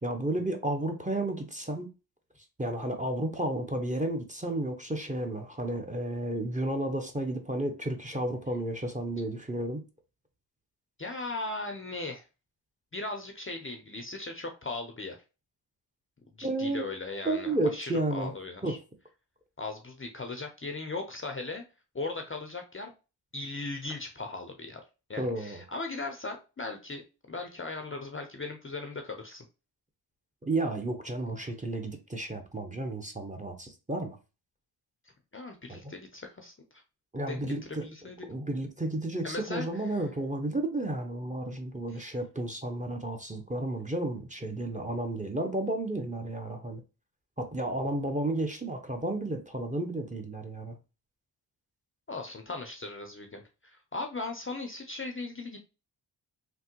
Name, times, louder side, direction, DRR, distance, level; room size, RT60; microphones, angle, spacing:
voice 1, 0.0-1.9 2.6-9.8 16.4-16.8 17.2-18.3 18.6-18.8 25.2-25.6 30.5-34.2 35.7-35.8 37.1-37.9 38.3-46.8 47.4-50.8, right 1 dB, 15° right, 0.9 m, -32 dB
voice 2, 11.0-12.2 12.9-15.2 16.4-18.8 19.6-21.6 21.9-22.9 23.3-24.8 25.1-27.0 27.3-29.4 35.3-36.8 37.3-38.2 39.2-39.7 41.9-42.1 52.1-55.7, left 3 dB, 25° left, 0.6 m, -38 dB
3.3 x 2.2 x 2.9 m
supercardioid pair, 40°, 46 cm